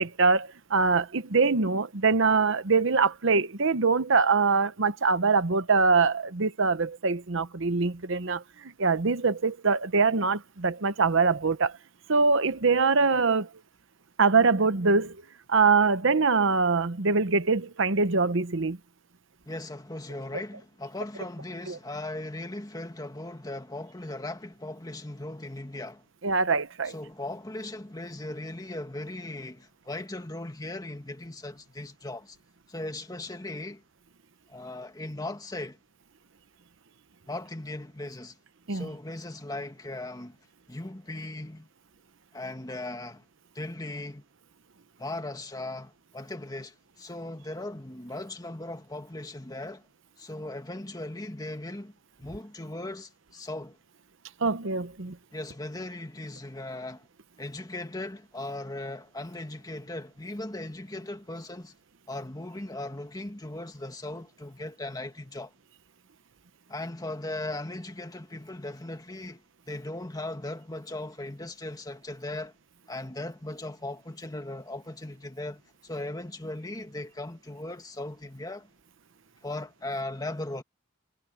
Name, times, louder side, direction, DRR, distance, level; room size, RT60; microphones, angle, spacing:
voice 1, 0.0-11.7 12.1-13.5 14.2-15.2 15.5-18.8 21.7-21.8 26.2-26.9 38.7-38.9 54.4-55.2, right 4 dB, 65° right, 1.0 m, -23 dB
voice 2, 19.5-26.1 26.8-32.4 32.7-33.8 34.5-35.8 37.3-38.4 38.7-40.4 40.7-41.7 42.3-43.3 43.5-44.2 45.0-49.8 50.2-51.9 52.2-53.8 55.3-57.1 57.4-61.7 62.1-65.5 66.7-72.5 72.9-78.7 79.4-80.6, left 2 dB, 20° left, 1.8 m, -38 dB
head